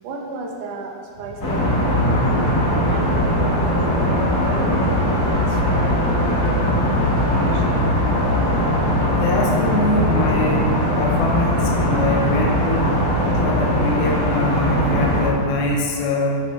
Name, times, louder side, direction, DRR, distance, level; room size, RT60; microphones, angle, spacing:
voice 1, 0.0-2.0 2.6-6.9 7.3-7.9, right 3 dB, 85° right, 2 dB, 3.1 m, -34 dB
sound 1, 1.1-7.4, equal, 25° left, 1.6 m, -38 dB
sound 2, 1.4-15.3, left 1 dB, 50° left, 1.1 m, -20 dB
voice 2, 9.2-10.7 11.0-13.0 13.4-16.4, left 1 dB, 75° left, -1 dB, 2.6 m, -23 dB
11.0 x 9.0 x 3.3 m, 2.2 s
omnidirectional pair, 4.7 m